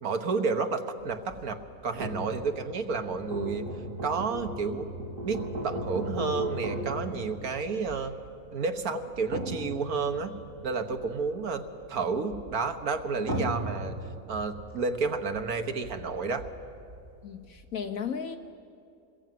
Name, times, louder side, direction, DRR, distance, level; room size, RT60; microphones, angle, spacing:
voice 1, 0.0-3.6 4.0-4.9 5.2-5.4 5.6-8.1 8.5-10.3 10.6-11.6 11.9-14.0 14.3-16.5, right 4 dB, 80° right, 1.8 m, -31 dB
sound 1, 1.0-17.7, right 1 dB, 60° right, 3.4 m, -38 dB
voice 2, 13.4-13.7 17.2-18.4, left 7 dB, 70° left, 1.4 m, -35 dB
27.0 x 21.0 x 9.3 m
omnidirectional pair, 1.5 m